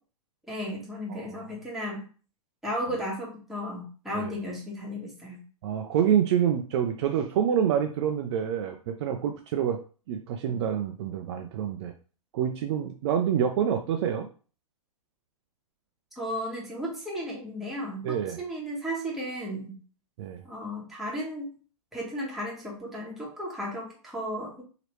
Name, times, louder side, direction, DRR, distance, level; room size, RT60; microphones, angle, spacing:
voice 1, 0.5-2.0 2.6-5.4 16.2-19.8 20.4-21.5 21.9-24.6, equal, ahead, -5 dB, 1.2 m, -34 dB
voice 2, 5.6-9.8 10.1-11.9 12.3-14.3 18.0-18.4 20.2-20.4, right 9 dB, 50° right, 5 dB, 0.4 m, -27 dB
3.0 x 2.8 x 3.1 m, 0.38 s
hypercardioid pair, 120°, 19 cm